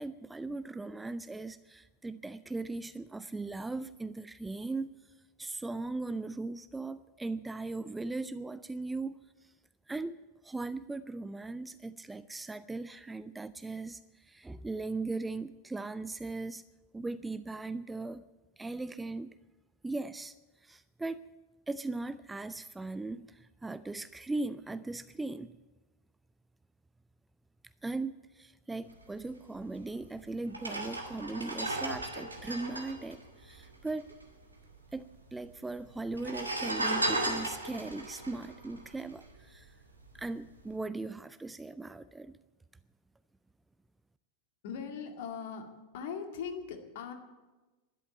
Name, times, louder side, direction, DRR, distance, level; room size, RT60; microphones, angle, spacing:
voice 1, 0.0-4.9 5.4-9.5 9.9-16.6 16.9-18.2 18.6-19.3 19.8-20.3 20.6-21.2 21.7-25.6 27.8-34.1 34.9-39.7 40.1-42.4, right 3 dB, 10° right, 0.4 m, -38 dB
sound 1, 29.8-29.9 30.5-34.2 34.4-34.5 34.7-35.4 36.1-39.6 40.0-40.2, right 2 dB, 80° right, 2.2 m, -35 dB
voice 2, 44.6-45.7 45.9-47.1, left 6 dB, 50° left, 2.2 m, -39 dB
12.5 x 11.0 x 9.3 m
figure-of-eight pair, 90°, 0 cm